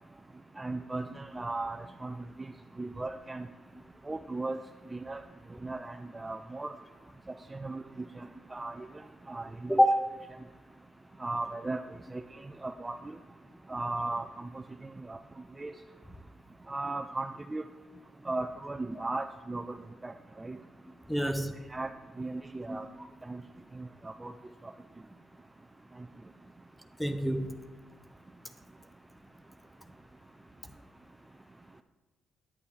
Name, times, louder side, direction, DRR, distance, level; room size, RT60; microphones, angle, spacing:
voice 1, 0.6-2.5 2.8-3.5 4.1-4.6 4.9-5.2 5.6-6.7 7.5-7.8 8.2-8.9 9.3-9.8 11.2-11.8 12.1-12.2 12.6-13.2 13.7-14.5 15.1-15.2 15.6-15.7 16.7-17.6 18.3-19.7 20.0-20.6 21.7-21.9 22.2-22.9 23.2-23.4 23.8-24.3, right 2 dB, 20° right, 6 dB, 0.4 m, -36 dB
voice 2, 21.1-21.7 22.7-22.8 27.0-27.6, equal, 5° left, 8 dB, 0.8 m, -26 dB
11.0 x 8.5 x 3.3 m, 1.2 s
cardioid pair, 90°, 0 cm